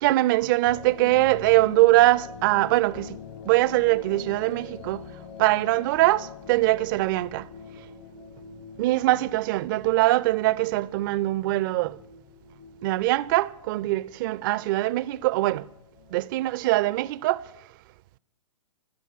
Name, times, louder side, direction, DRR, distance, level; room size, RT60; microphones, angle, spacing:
voice 1, 0.0-3.2 3.4-5.0 5.4-7.5 8.8-12.0 12.8-15.7 16.1-17.4, right 18 dB, 40° right, 0.4 m, -22 dB
sound 1, 0.6-17.1, left 7 dB, 60° left, 1.4 m, -45 dB
15.5 x 12.5 x 6.5 m
hypercardioid pair, 125°, 17 cm